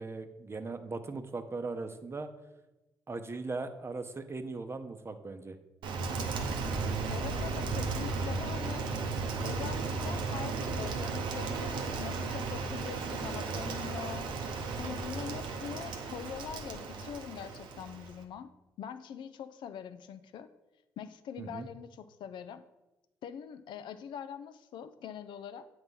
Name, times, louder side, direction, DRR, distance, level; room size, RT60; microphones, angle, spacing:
voice 1, 0.0-2.3 3.1-5.6 21.4-21.7, right 3 dB, 30° right, 8 dB, 0.7 m, -39 dB
Rain, 5.8-18.2, right 4 dB, 75° right, 0.7 m, -35 dB
voice 2, 7.1-8.9 9.4-14.3 14.8-18.5 18.8-20.5 21.0-22.6 23.2-25.7, left 8 dB, 70° left, 11 dB, 0.4 m, -43 dB
7.9 x 2.9 x 5.3 m, 1.0 s
hypercardioid pair, 50°, 8 cm